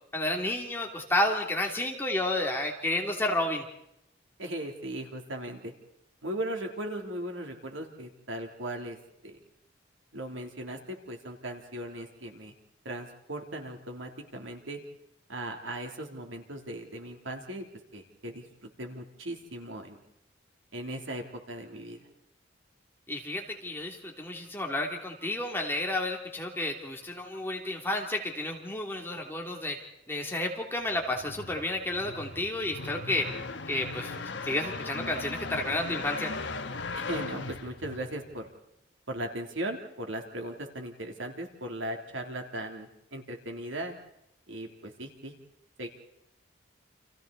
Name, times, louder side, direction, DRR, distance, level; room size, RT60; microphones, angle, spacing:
voice 1, 0.1-3.6 23.1-33.4 33.7-34.1 34.4-36.4, left 1 dB, 10° left, 1 dB, 3.0 m, -31 dB
voice 2, 4.4-5.7 6.2-9.0 9.2-9.4 10.1-12.5 12.8-14.8 15.3-17.6 17.9-20.0 20.7-22.1 36.9-38.5 39.1-43.9 44.5-45.3 45.8-45.9, right 1 dB, 85° right, 3 dB, 3.3 m, -38 dB
sound 1, 30.9-38.5, left 3 dB, 65° left, 1.4 m, -38 dB
29.5 x 27.5 x 4.2 m, 0.80 s
head